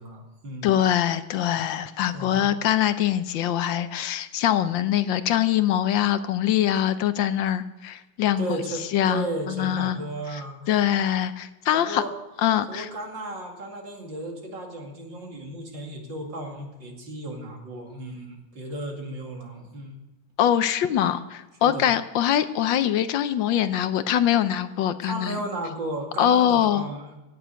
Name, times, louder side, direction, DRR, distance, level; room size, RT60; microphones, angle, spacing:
voice 1, 0.0-0.8 2.1-2.5 8.4-10.7 11.7-12.1 12.7-20.0 21.6-21.9 25.0-27.2, right 2 dB, 70° right, 1 dB, 3.1 m, -34 dB
voice 2, 0.6-8.5 8.9-10.0 10.7-12.0 12.4-12.9 20.4-25.4 26.2-26.8, left 11 dB, 80° left, 12 dB, 1.5 m, -23 dB
16.5 x 6.7 x 9.2 m, 1.0 s
omnidirectional pair, 2.1 m